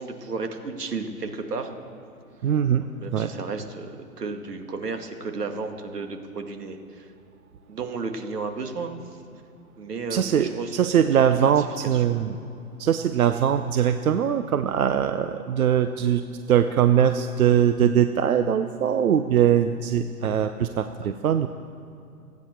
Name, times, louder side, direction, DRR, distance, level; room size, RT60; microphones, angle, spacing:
voice 1, 0.0-1.7 3.0-7.1 7.7-8.9 9.8-11.0 11.6-11.7 11.9-12.0 21.0-21.1, right 4 dB, 85° right, 5 dB, 2.3 m, -33 dB
voice 2, 2.4-2.9 3.1-3.3 10.1-12.4 12.8-16.2 16.5-21.5, right 9 dB, 65° right, 9 dB, 0.8 m, -21 dB
28.5 x 9.7 x 4.6 m, 2.6 s
hypercardioid pair, 150°, 46 cm